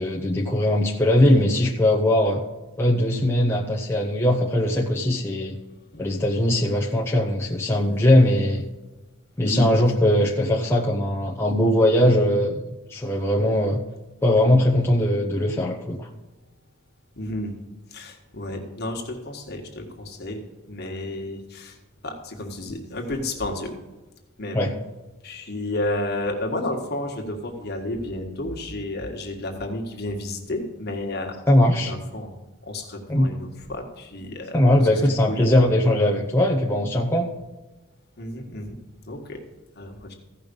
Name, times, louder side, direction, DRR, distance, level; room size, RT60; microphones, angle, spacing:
voice 1, 0.0-2.4 2.8-5.6 6.0-8.6 9.4-12.6 12.9-13.8 14.2-16.1 24.5-24.7 31.5-31.9 33.1-33.3 34.5-37.3, left 1 dB, 10° left, -2 dB, 0.7 m, -20 dB
voice 2, 5.9-6.2 9.4-10.1 17.2-17.5 17.9-21.8 22.0-23.7 24.4-24.7 25.2-31.4 31.7-32.3 32.6-34.6 34.9-35.0 35.3-35.7 38.2-38.8 39.1-39.4 39.8-40.1, left 1 dB, 50° left, 2 dB, 1.6 m, -31 dB
15.0 x 5.5 x 5.3 m, 1.1 s
head